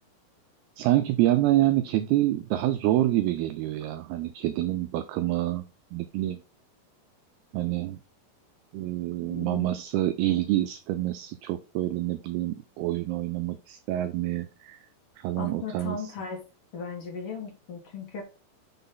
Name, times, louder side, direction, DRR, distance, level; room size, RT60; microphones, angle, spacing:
voice 1, 0.8-6.4 7.5-8.0 8.7-14.8 15.2-16.1, right 15 dB, 85° right, 10 dB, 2.3 m, -27 dB
voice 2, 9.2-9.7 15.4-16.4 16.7-18.2, left 5 dB, 55° left, 1 dB, 1.6 m, -37 dB
6.4 x 4.0 x 5.3 m, 0.32 s
omnidirectional pair, 5.0 m